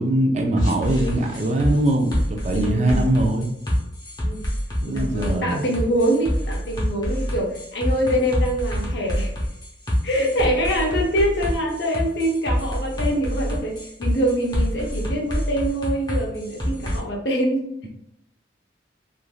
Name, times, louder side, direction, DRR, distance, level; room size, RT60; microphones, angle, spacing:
voice 1, 0.0-3.5 4.8-5.6, right 1 dB, 35° right, 3 dB, 0.3 m, -22 dB
sound 1, 0.6-17.0, equal, 20° left, 0.6 m, -26 dB
voice 2, 2.5-3.1 4.2-4.4 4.9-9.3 10.0-17.7, equal, 65° left, -1 dB, 0.7 m, -24 dB
3.1 x 2.4 x 2.3 m, 0.80 s
head